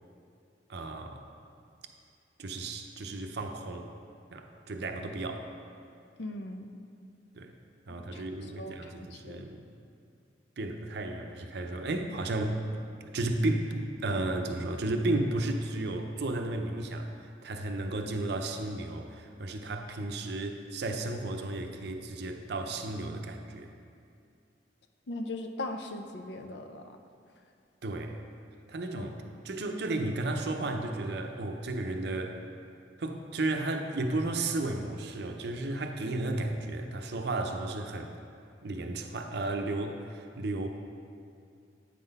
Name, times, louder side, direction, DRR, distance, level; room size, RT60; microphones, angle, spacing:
voice 1, 0.7-1.2 2.4-3.9 4.3-5.5 7.4-7.5 7.9-9.7 10.6-12.6 13.1-23.7 27.8-28.2 28.7-29.1 29.4-32.4 33.0-38.1 38.6-40.7, right 2 dB, 65° right, 5 dB, 0.6 m, -33 dB
voice 2, 6.2-6.7 7.9-9.5 25.1-27.0 28.9-29.1, left 2 dB, 70° left, 6 dB, 0.5 m, -40 dB
8.3 x 3.9 x 5.3 m, 2.4 s
head